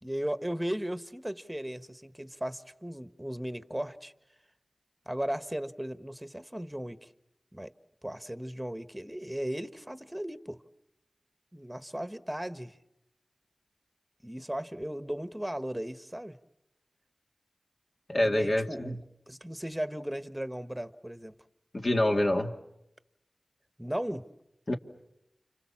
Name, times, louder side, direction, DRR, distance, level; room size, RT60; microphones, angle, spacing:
voice 1, 0.0-4.1 5.1-7.1 7.5-7.7 8.0-10.6 11.5-12.8 14.2-16.4 18.2-19.0 19.3-21.3 23.8-24.3, right 1 dB, 10° right, 1.3 m, -36 dB
voice 2, 18.1-19.0 21.7-22.5 24.7-24.8, left 1 dB, 55° left, 2.2 m, -26 dB
30.0 x 26.5 x 7.4 m
wide cardioid pair, 45°, 0 cm